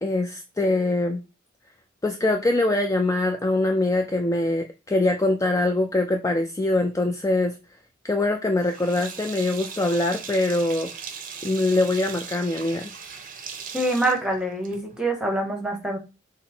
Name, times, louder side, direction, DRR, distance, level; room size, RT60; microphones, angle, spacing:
voice 1, 0.0-1.2 2.0-7.6 8.0-10.9 11.4-12.9, left 2 dB, 15° left, 0.3 m, -23 dB
Sink (filling or washing), 8.6-15.0, right 6 dB, 40° right, 0.6 m, -39 dB
voice 2, 13.7-16.0, right 1 dB, 5° right, 0.9 m, -25 dB
5.8 x 2.0 x 4.3 m
head